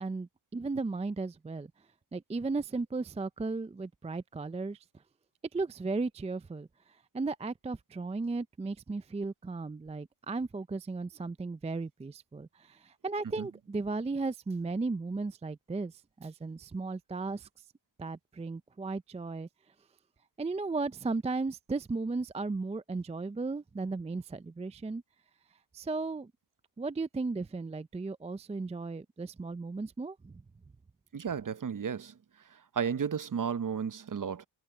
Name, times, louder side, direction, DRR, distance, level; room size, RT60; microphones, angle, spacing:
voice 1, 0.0-1.7 2.1-4.8 5.5-6.7 7.1-15.9 16.2-17.5 18.0-19.5 20.4-25.0 25.7-26.3 26.8-30.4, right 3 dB, 15° right, 0.4 m, -35 dB
voice 2, 31.1-32.1 32.7-34.5, right 7 dB, 45° right, 0.8 m, -33 dB
cardioid pair, 85°, 46 cm